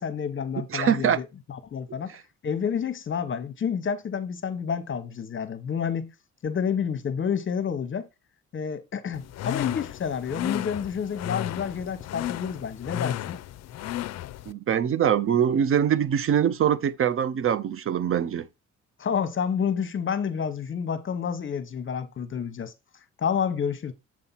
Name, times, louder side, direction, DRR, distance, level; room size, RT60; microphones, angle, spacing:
voice 1, 0.0-2.1 2.4-6.1 6.4-8.1 8.5-13.4 19.0-22.7 23.2-23.9, left 7 dB, 40° left, 0.9 m, -29 dB
voice 2, 0.7-1.2 14.5-18.4, right 9 dB, 45° right, 0.5 m, -23 dB
sound 1, 9.1-14.5, left 12 dB, 60° left, 0.4 m, -34 dB
7.4 x 2.8 x 5.6 m
cardioid pair, 90°, 30 cm